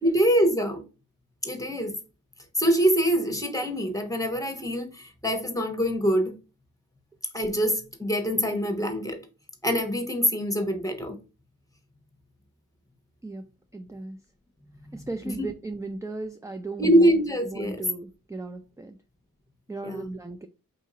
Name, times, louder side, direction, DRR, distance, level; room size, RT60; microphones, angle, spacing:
voice 1, 0.0-0.8 1.4-2.0 2.6-6.4 7.3-9.2 9.6-11.2 15.3-15.5 16.8-17.8 19.8-20.1, equal, 10° left, 1.0 m, -24 dB
voice 2, 13.7-14.2 14.9-17.1 17.5-19.0 19.7-20.5, right 2 dB, 10° right, 0.3 m, -36 dB
4.0 x 2.7 x 3.7 m
wide cardioid pair, 70°, 35 cm